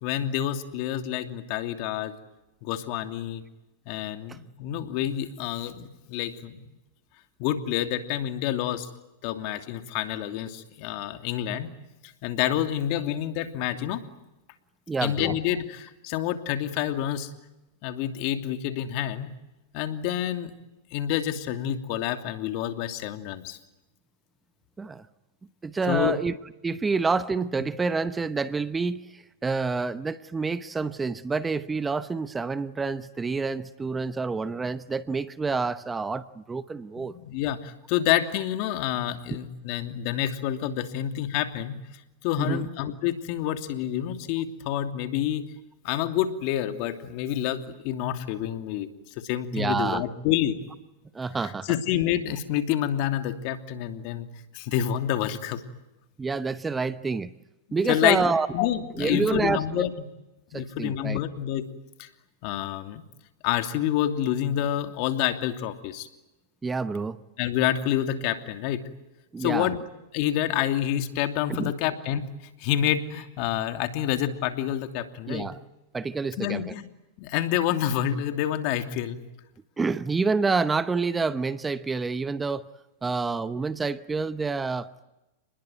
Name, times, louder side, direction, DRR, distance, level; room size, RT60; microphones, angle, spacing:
voice 1, 0.0-2.1 2.6-3.4 3.9-6.6 7.4-8.9 9.2-11.7 12.2-14.0 15.0-17.3 17.8-19.3 19.7-20.5 20.9-23.6 25.9-26.1 37.2-41.8 42.2-45.4 45.8-48.9 49.2-50.6 51.6-54.3 54.5-55.6 57.7-58.2 58.5-59.9 60.5-61.6 62.0-62.1 62.4-63.0 63.4-66.1 67.4-68.8 69.4-69.8 70.1-72.3 72.6-75.4 76.4-76.8 77.2-79.2, left 11 dB, 50° left, 7 dB, 2.8 m, -28 dB
voice 2, 14.9-15.4 24.8-25.1 25.6-26.3 26.6-37.1 39.3-39.4 42.4-42.6 44.7-44.8 49.5-50.0 51.1-51.7 56.2-57.3 57.7-58.5 59.0-59.9 60.5-61.2 66.6-67.2 69.3-69.7 71.5-71.7 75.3-75.6 75.9-76.7 79.8-82.7 83.0-84.9, right 4 dB, 15° right, 14 dB, 0.9 m, -28 dB
29.5 x 21.0 x 9.3 m, 1.0 s
hypercardioid pair, 130°, 0 cm